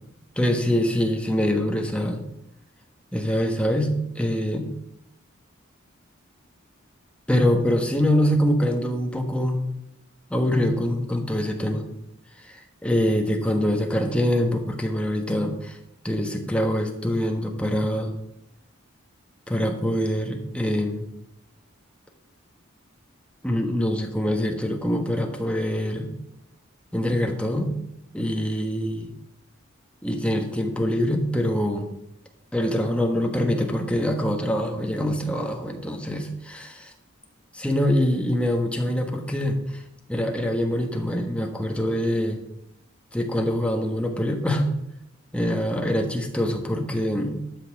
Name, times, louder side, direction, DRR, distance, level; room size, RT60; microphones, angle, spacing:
voice 1, 0.4-2.2 3.1-4.7 7.3-9.6 10.3-11.9 12.4-15.8 16.0-18.1 19.5-21.1 23.4-26.1 26.9-27.7 28.1-29.1 30.0-31.9 32.5-36.9 37.5-39.8 40.1-42.4 43.1-44.7 45.3-47.4, equal, 5° left, 3 dB, 1.3 m, -24 dB
12.5 x 5.7 x 7.2 m, 0.80 s
head